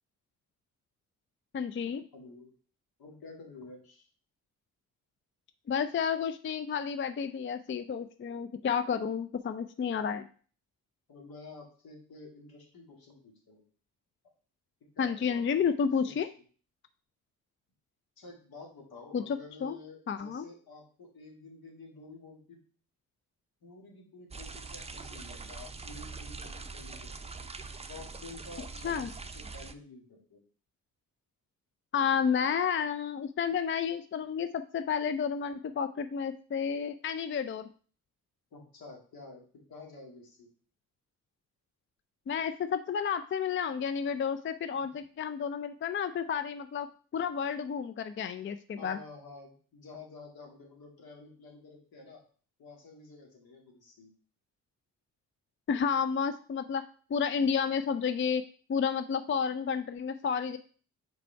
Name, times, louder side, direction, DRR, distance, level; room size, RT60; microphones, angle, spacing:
voice 1, 1.5-2.0 5.7-10.3 15.0-16.3 19.1-19.8 20.1-20.4 28.8-29.1 31.9-37.7 42.3-46.9 47.1-49.0 55.7-58.4 58.7-60.6, left 7 dB, 35° left, 11 dB, 0.4 m, -31 dB
voice 2, 2.1-2.5 3.0-4.1 11.1-13.6 14.9-15.7 16.0-16.1 18.2-22.6 23.6-27.5 27.9-30.4 38.5-40.5 48.8-52.2 52.6-54.1, left 3 dB, 70° left, 1 dB, 2.0 m, -50 dB
sound 1, 24.3-29.7, right 4 dB, 15° right, 0.6 m, -43 dB
5.0 x 4.7 x 4.4 m, 0.42 s
supercardioid pair, 50°, 38 cm